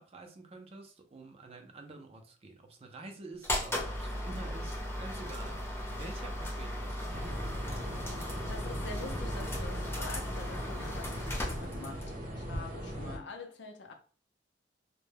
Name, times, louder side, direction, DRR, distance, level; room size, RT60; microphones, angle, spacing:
voice 1, 0.0-7.4, right 2 dB, 30° right, 0.4 m, -48 dB
sound 1, 3.4-12.1, left 1 dB, 15° left, 0.6 m, -37 dB
sound 2, 7.1-13.2, equal, 45° right, 0.8 m, -39 dB
voice 2, 8.5-13.9, left 3 dB, 65° left, 0.5 m, -46 dB
2.1 x 2.1 x 3.2 m
head